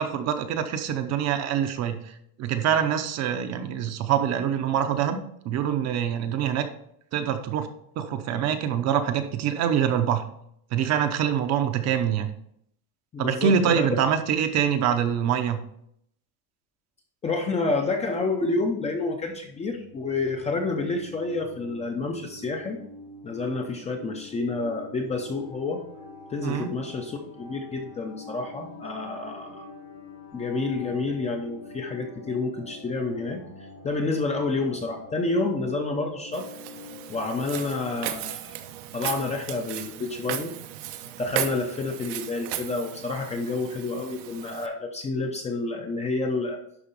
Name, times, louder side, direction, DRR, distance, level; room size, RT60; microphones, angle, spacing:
voice 1, 0.0-2.0 2.4-5.2 5.4-6.6 7.1-7.7 8.0-10.2 10.7-12.3 13.2-15.6 26.4-26.7, right 8 dB, 35° right, 8 dB, 0.7 m, -25 dB
voice 2, 13.1-13.9 17.2-22.8 23.2-25.8 26.3-29.7 30.3-33.4 33.8-36.5 37.1-38.6 38.9-40.5 41.2-46.6, left 3 dB, 15° left, 3 dB, 0.5 m, -29 dB
sound 1, 19.2-38.0, left 2 dB, 75° left, 3.4 m, -45 dB
Walk footsteps, 36.3-44.7, right 12 dB, 80° right, 1.0 m, -36 dB
11.5 x 3.9 x 5.3 m, 0.72 s
cardioid pair, 160°, 45 cm